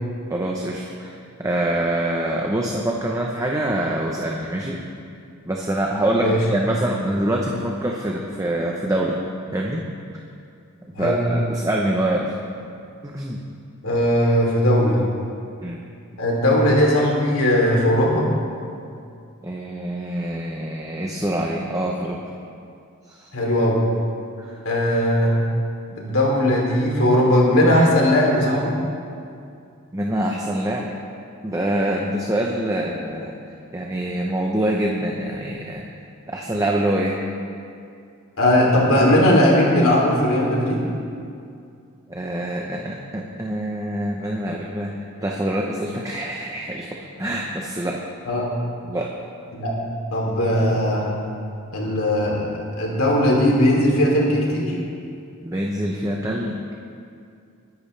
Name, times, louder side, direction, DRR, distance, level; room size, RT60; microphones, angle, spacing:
voice 1, 0.3-4.8 5.4-9.2 9.5-9.9 10.1-10.3 10.8-12.4 13.0-13.4 15.6-15.8 19.4-22.2 23.1-23.3 24.4-24.6 29.9-30.9 31.4-33.3 33.7-35.9 36.3-37.2 42.1-48.0 48.9-49.1 55.4-56.6, right 1 dB, 15° right, -1 dB, 0.8 m, -25 dB
voice 2, 13.8-15.0 16.2-18.3 23.3-23.8 24.6-25.4 26.0-28.8 38.4-40.8 48.3-48.5 49.5-49.7 50.1-51.1 51.7-54.8, left 1 dB, 70° left, -2 dB, 3.1 m, -18 dB
21.5 x 11.0 x 3.4 m, 2.4 s
head